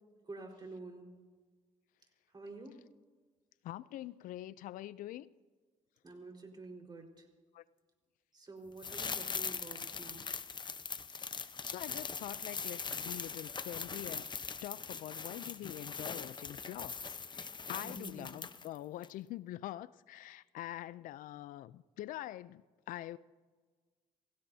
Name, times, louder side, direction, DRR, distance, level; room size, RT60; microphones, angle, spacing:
voice 1, 0.2-1.1 2.3-2.7 6.0-7.3 8.3-10.2 17.8-18.3, right 2 dB, 30° right, 4.5 m, -49 dB
voice 2, 3.6-5.3 7.5-7.6 11.3-14.3 14.6-23.2, left 14 dB, 80° left, 0.4 m, -45 dB
sound 1, 8.8-18.8 19.0-19.1, left 5 dB, 35° left, 0.9 m, -41 dB
29.0 x 16.5 x 2.8 m
cardioid pair, 75°, 14 cm